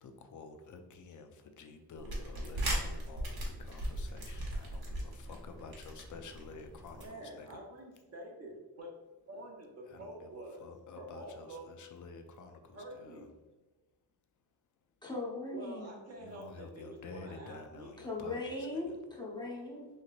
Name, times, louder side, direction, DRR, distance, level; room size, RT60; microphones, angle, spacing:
voice 1, 0.0-7.6 9.9-13.3 16.2-19.0, left 4 dB, 50° left, 6 dB, 0.5 m, -50 dB
sound 1, 2.0-7.1, right 1 dB, 65° right, 1.1 m, -38 dB
voice 2, 6.9-8.9 9.3-10.7 11.0-11.6 12.7-13.3 15.5-17.9, right 1 dB, 40° right, -1 dB, 0.9 m, -47 dB
voice 3, 15.0-15.9 18.0-19.9, left 2 dB, 10° left, -4 dB, 0.8 m, -39 dB
3.1 x 2.8 x 2.4 m, 1.2 s
wide cardioid pair, 95°, 40 cm